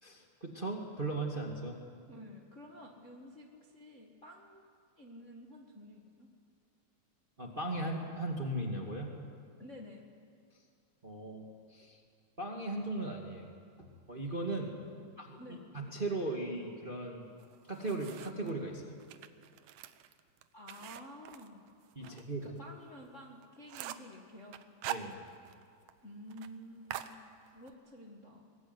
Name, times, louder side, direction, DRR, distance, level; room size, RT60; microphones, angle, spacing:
voice 1, 0.0-1.8 7.4-9.1 11.0-12.0 12.4-13.5 13.8-14.7 15.2-17.3 17.7-19.0 21.9-22.5 24.9-25.2, right 2 dB, 20° right, 1 dB, 1.5 m, -38 dB
voice 2, 2.1-4.7 5.0-6.3 9.6-10.0 14.7-15.1 15.4-15.6 20.5-21.7 22.0-24.6 26.0-27.2 27.4-28.4, left 1 dB, 35° left, 0 dB, 1.3 m, -51 dB
sound 1, 17.4-18.5 19.0-22.2 22.6-22.7 23.1-23.2 23.4-24.1 24.5-25.6 25.9-26.0 26.3-26.5 26.9-27.7, right 13 dB, 90° right, 2.5 m, -44 dB
23.0 x 20.0 x 9.6 m, 2.2 s
omnidirectional pair, 3.7 m